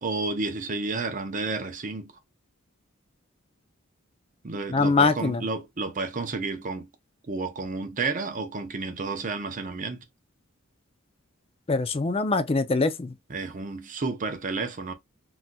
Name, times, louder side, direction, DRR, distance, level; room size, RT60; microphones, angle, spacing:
voice 1, 0.0-2.1 4.4-6.9 7.3-10.0 13.3-14.9, right 3 dB, 40° right, 0.6 m, -31 dB
voice 2, 4.7-5.4 11.7-13.1, left 3 dB, 30° left, 0.4 m, -23 dB
4.1 x 2.5 x 2.2 m
head